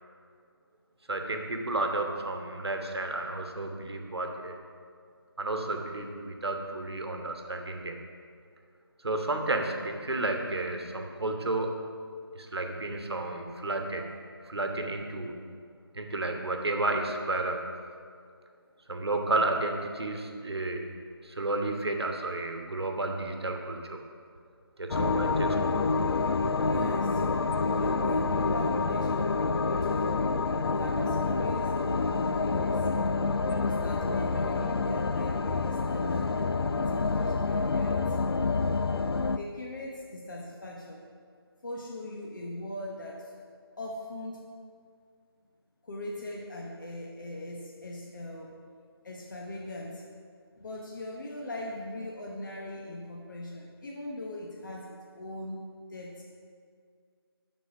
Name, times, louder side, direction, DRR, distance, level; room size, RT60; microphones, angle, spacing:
voice 1, 1.1-4.6 5.4-8.0 9.0-11.8 12.3-14.0 14.4-15.4 15.9-17.7 18.9-20.9 21.2-24.0 24.8-25.9, right 2 dB, 75° right, 3 dB, 1.3 m, -32 dB
sound 1, 24.9-39.4, left 4 dB, 65° left, 0.4 m, -27 dB
voice 2, 26.6-27.2 27.8-30.2 30.7-32.9 33.5-38.2 38.5-38.6 39.3-41.0 41.6-43.3 43.8-44.4 45.8-48.6 49.0-50.0 50.6-55.6 55.9-56.2, left 1 dB, 50° left, -2 dB, 1.0 m, -40 dB
11.0 x 4.4 x 5.9 m, 2.2 s
figure-of-eight pair, 165°, 13 cm